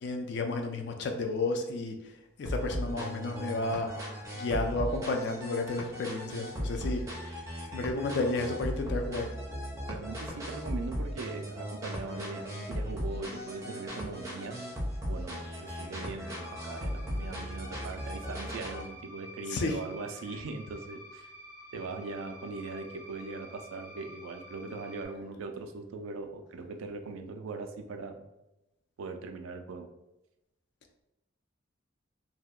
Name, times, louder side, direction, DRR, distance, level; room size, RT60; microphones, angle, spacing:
voice 1, 0.0-2.0 2.4-3.9 4.3-7.4 7.7-9.3 19.5-19.8, left 2 dB, 55° left, 4 dB, 0.3 m, -32 dB
sound 1, 2.5-18.9, equal, 15° right, 0.4 m, -37 dB
voice 2, 9.9-14.6 15.1-21.3 21.7-28.2 29.0-29.9, right 3 dB, 85° right, 6 dB, 0.3 m, -40 dB
sound 2, 16.2-25.1, equal, 80° left, 0.9 m, -50 dB
2.7 x 2.1 x 2.3 m, 0.94 s
head